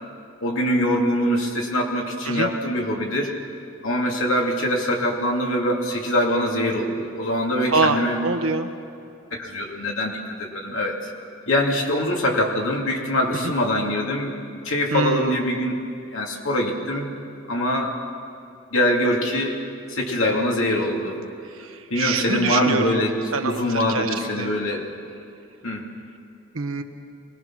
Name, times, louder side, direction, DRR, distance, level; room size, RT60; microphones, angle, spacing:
voice 1, 0.4-3.3 3.8-8.2 9.3-11.1 11.5-14.4 14.6-15.8 16.1-17.1 17.5-17.9 18.7-19.6 19.9-21.2 21.9-23.2 23.4-24.9 25.6-25.8, left 1 dB, 70° left, 0 dB, 2.7 m, -23 dB
voice 2, 7.7-8.7 13.3-13.5 14.9-15.5 21.5-23.0 23.3-24.5 26.5-26.8, right 3 dB, 85° right, 6 dB, 1.3 m, -25 dB
23.5 x 19.0 x 6.1 m, 2.6 s
head